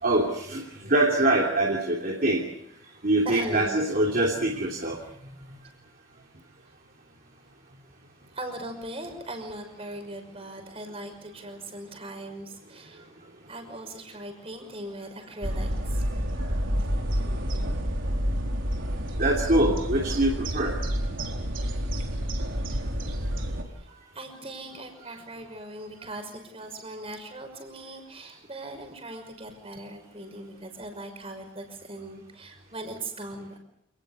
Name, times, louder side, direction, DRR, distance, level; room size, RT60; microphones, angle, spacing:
voice 1, 0.0-2.4 3.0-5.0 19.2-20.8, right 1 dB, 45° right, -2 dB, 3.2 m, -24 dB
voice 2, 3.2-3.9 8.3-13.0 13.4-16.7 23.8-23.9 24.1-33.6, right 1 dB, 30° right, 5 dB, 5.8 m, -39 dB
sound 1, 15.4-23.6, equal, 70° right, 4.1 m, -29 dB
28.5 x 19.5 x 8.4 m, 0.76 s
head